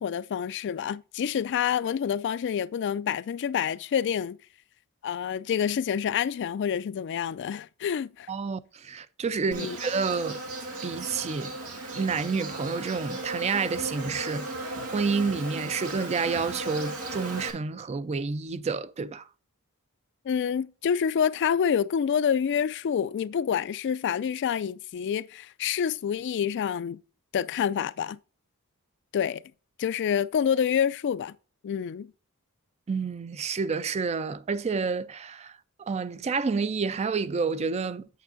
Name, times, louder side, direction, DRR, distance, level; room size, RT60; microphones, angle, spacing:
voice 1, 0.0-4.4 5.0-8.3 9.5-9.8 20.3-27.0 27.3-28.2 29.1-29.4 29.8-31.3 31.6-32.1, left 8 dB, 55° left, 0.3 m, -27 dB
voice 2, 8.3-10.4 10.8-11.5 12.0-19.3 32.9-35.6 35.9-38.1, right 5 dB, 30° right, 0.4 m, -29 dB
Insect, 9.5-17.5, right 2 dB, 90° right, 1.8 m, -36 dB
8.4 x 7.3 x 2.6 m
head